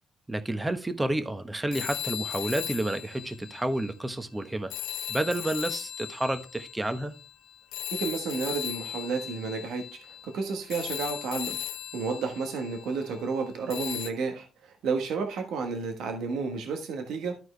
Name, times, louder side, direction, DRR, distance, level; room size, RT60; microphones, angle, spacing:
voice 1, 0.3-4.7 5.1-7.1, right 1 dB, 15° right, 1.1 m, -30 dB
sound 1, 1.7-4.2 4.7-13.2 13.7-14.1, left 11 dB, 90° left, 0.7 m, -37 dB
voice 2, 8.0-11.6 11.9-17.3, right 4 dB, 80° right, 1.4 m, -31 dB
13.0 x 4.5 x 3.3 m
cardioid pair, 85°, 0 cm